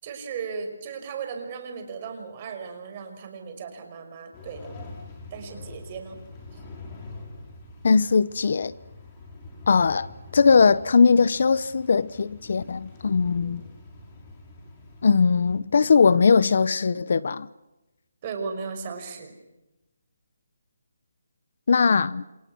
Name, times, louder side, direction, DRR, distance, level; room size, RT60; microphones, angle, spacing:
voice 1, 0.0-4.7 5.3-6.2 6.5-6.6 13.4-13.6 18.2-19.3, right 5 dB, 30° right, 5.6 m, -36 dB
sound 1, 4.3-15.6, left 2 dB, 20° left, 6.1 m, -44 dB
voice 2, 7.8-8.7 9.7-10.1 10.3-13.6 15.0-17.5 21.7-22.2, left 5 dB, 55° left, 1.0 m, -20 dB
30.0 x 27.5 x 6.2 m
hypercardioid pair, 165°, 0 cm